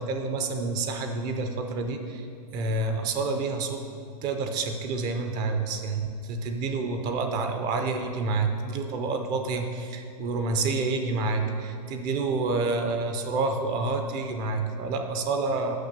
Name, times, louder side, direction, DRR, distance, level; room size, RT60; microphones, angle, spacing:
voice 1, 0.0-2.3 2.5-3.8 4.2-15.8, right 3 dB, 20° right, 5 dB, 0.5 m, -28 dB
6.6 x 5.9 x 6.7 m, 2.3 s
hypercardioid pair, 160°, 21 cm